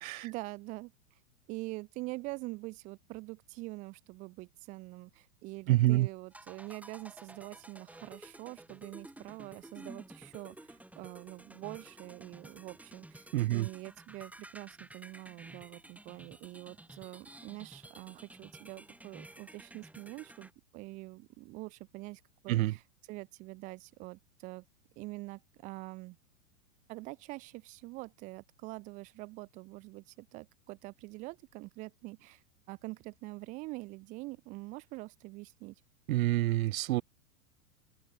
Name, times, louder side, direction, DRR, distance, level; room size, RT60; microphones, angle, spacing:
voice 1, 0.2-0.9 1.5-22.8 23.1-24.6 25.0-26.2 26.9-35.7, right 23 dB, 20° right, 0.4 m, -45 dB
voice 2, 5.7-6.1 13.3-13.7 22.5-22.7 36.1-37.0, right 16 dB, 60° right, 0.9 m, -27 dB
sound 1, 6.3-20.5, right 1 dB, 5° right, 2.7 m, -52 dB
open air
hypercardioid pair, 130°, 45 cm